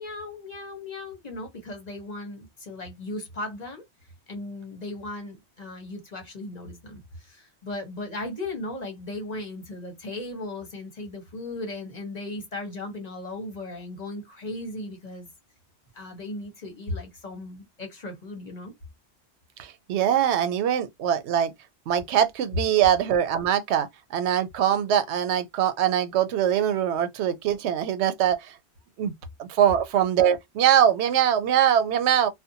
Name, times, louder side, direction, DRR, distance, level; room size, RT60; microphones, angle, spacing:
voice 1, 0.0-3.8 4.3-15.3 15.9-18.7, left 2 dB, 40° left, 1.0 m, -37 dB
voice 2, 19.6-21.5 21.9-28.5 29.0-29.1 29.4-32.3, right 9 dB, 90° right, 0.9 m, -22 dB
2.5 x 2.3 x 2.6 m
omnidirectional pair, 1.1 m